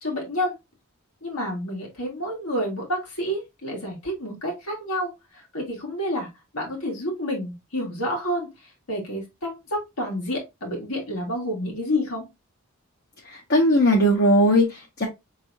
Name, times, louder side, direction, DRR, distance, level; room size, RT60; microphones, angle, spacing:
voice 1, 0.0-0.5 1.2-6.3 6.5-8.5 8.9-12.2, equal, 85° left, 1.8 m, -29 dB
voice 2, 13.2-15.1, equal, 50° left, 0.8 m, -19 dB
4.5 x 3.3 x 2.6 m
head